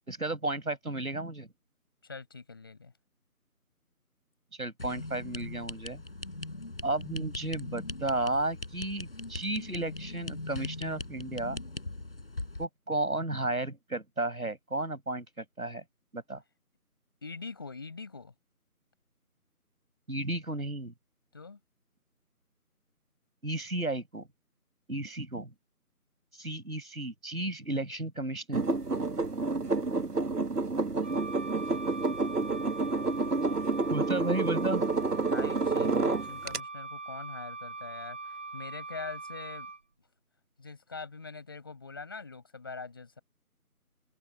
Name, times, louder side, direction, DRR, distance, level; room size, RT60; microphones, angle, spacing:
voice 1, 0.1-1.5 4.5-6.0 6.8-11.6 12.6-15.8 16.1-16.4 20.1-20.9 23.4-24.3 24.9-25.5 26.4-28.6 33.9-34.9, right 2 dB, 70° right, 7.7 m, -33 dB
voice 2, 2.0-2.9 17.2-18.3 21.3-21.6 35.3-39.7 40.6-43.2, left 4 dB, 15° left, 6.9 m, -43 dB
sound 1, 4.8-12.7, left 2 dB, 40° left, 7.2 m, -40 dB
sound 2, 28.5-36.6, right 3 dB, 90° right, 1.6 m, -29 dB
Wind instrument woodwind instrument, 31.0-39.8, right 3 dB, 5° right, 3.5 m, -42 dB
figure-of-eight pair, 180°, 46 cm